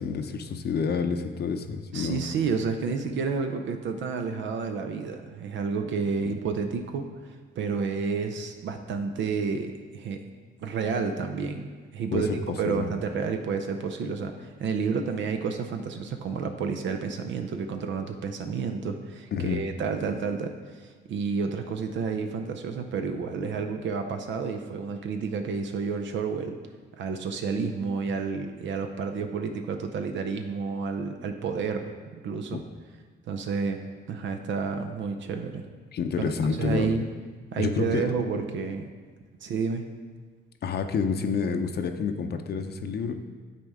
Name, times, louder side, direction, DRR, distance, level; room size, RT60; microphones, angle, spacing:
voice 1, 0.0-2.2 6.2-6.4 12.1-12.9 19.3-19.6 32.5-32.6 35.9-36.9 37.6-38.1 40.6-43.1, left 5 dB, 55° left, 6 dB, 0.6 m, -28 dB
voice 2, 1.9-10.2 10.6-12.3 12.6-26.6 27.0-31.9 32.2-32.6 33.3-33.8 34.1-35.6 36.2-37.0 37.5-38.9 39.4-39.8, right 5 dB, 70° right, 6 dB, 0.6 m, -30 dB
9.3 x 4.2 x 3.6 m, 1.4 s
cardioid pair, 90°, 20 cm